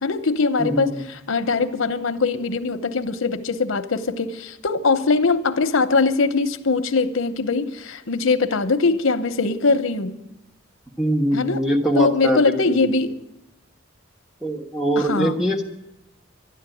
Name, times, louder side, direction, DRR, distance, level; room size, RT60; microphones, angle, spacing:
voice 1, 0.0-0.9 1.3-10.2 11.3-11.6 12.0-13.1 15.0-15.3, left 4 dB, 85° left, 10 dB, 0.8 m, -21 dB
voice 2, 0.6-1.0 11.0-12.9 14.4-15.6, equal, 5° right, 1 dB, 1.2 m, -22 dB
12.5 x 10.5 x 9.1 m, 0.91 s
head